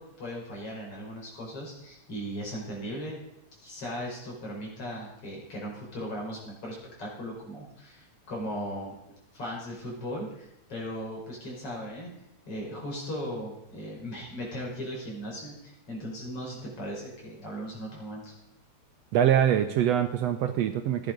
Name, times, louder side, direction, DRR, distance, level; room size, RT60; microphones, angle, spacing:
voice 1, 0.0-3.2 3.6-9.0 9.3-12.1 12.5-18.3, equal, 50° left, -3 dB, 5.9 m, -37 dB
voice 2, 19.1-21.1, right 10 dB, 75° right, 7 dB, 1.7 m, -24 dB
16.0 x 10.5 x 5.2 m, 0.85 s
omnidirectional pair, 3.3 m